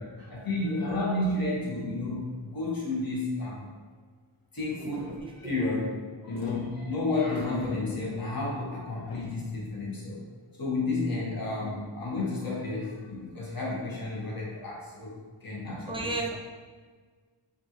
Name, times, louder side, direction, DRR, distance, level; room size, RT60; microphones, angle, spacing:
voice 1, 0.0-3.6 4.5-10.2 10.6-16.2, left 2 dB, 45° left, -6 dB, 1.3 m, -31 dB
sound 1, 4.7-5.3 6.3-6.5 7.3-7.7 8.1-8.2 8.9-9.5, left 2 dB, 90° left, 0.8 m, -45 dB
voice 2, 15.9-16.4, right 2 dB, 10° right, 0 dB, 0.6 m, -33 dB
5.1 x 2.6 x 3.0 m, 1.5 s
wide cardioid pair, 45°, 47 cm